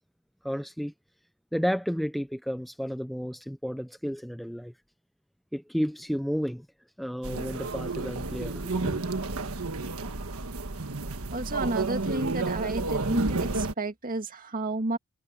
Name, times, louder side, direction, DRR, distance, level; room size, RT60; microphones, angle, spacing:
voice 1, 0.4-0.9 1.5-4.7 5.5-6.7 7.0-9.0, equal, ahead, 0.6 m, -32 dB
sound 1, 7.2-13.7, right 3 dB, 85° right, 1.5 m, -31 dB
voice 2, 11.3-15.0, right 2 dB, 40° right, 2.0 m, -31 dB
head